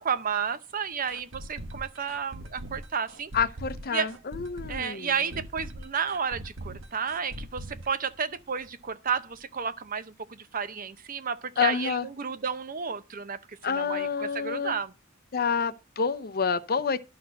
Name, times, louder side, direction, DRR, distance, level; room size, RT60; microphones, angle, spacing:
voice 1, 0.0-3.3 3.9-4.1 4.7-14.9, right 6 dB, 40° right, 0.7 m, -32 dB
sound 1, 1.1-8.8 9.1-9.2 9.6-9.7, right 1 dB, 65° right, 1.1 m, -41 dB
voice 2, 3.3-5.1 11.6-12.1 13.6-14.7 15.3-17.0, left 6 dB, 50° left, 0.6 m, -28 dB
12.5 x 4.1 x 6.4 m
head